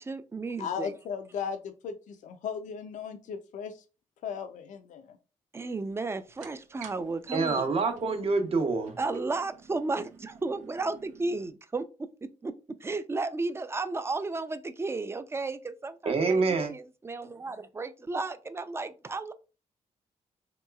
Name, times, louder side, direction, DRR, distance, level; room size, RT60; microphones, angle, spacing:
voice 1, 0.0-0.9 5.5-7.6 9.0-11.8 12.4-12.5 12.8-16.4 16.7-19.3, right 3 dB, 20° right, 0.3 m, -33 dB
voice 2, 0.6-3.7 4.2-5.2, left 6 dB, 80° left, 0.4 m, -36 dB
sound 1, 6.3-11.5, right 7 dB, 85° right, 0.5 m, -48 dB
voice 3, 7.3-8.9 16.0-16.7, right 4 dB, 50° right, 0.8 m, -26 dB
3.0 x 2.9 x 2.3 m
cardioid pair, 85°, 13 cm